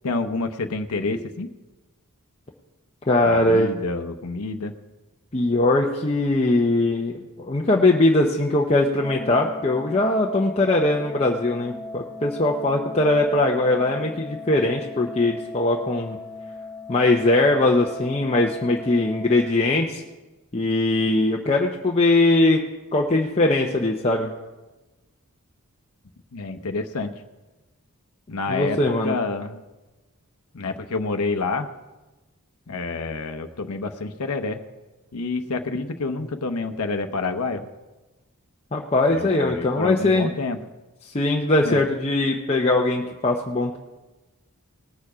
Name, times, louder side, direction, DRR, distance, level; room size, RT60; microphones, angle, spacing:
voice 1, 0.0-1.5 3.2-4.7 26.3-27.1 28.3-29.6 30.5-31.7 32.7-34.6 35.1-37.7 39.1-40.6 41.6-41.8, left 3 dB, 80° left, 6 dB, 0.8 m, -28 dB
voice 2, 3.1-3.7 5.3-16.2 16.9-20.0 20.5-22.6 22.9-24.3 28.5-29.1 38.7-40.3 41.0-43.8, left 2 dB, 30° left, -1 dB, 0.8 m, -21 dB
Organ, 8.9-20.0, left 3 dB, 10° left, 4.4 m, -38 dB
19.0 x 7.0 x 5.0 m, 1.1 s
head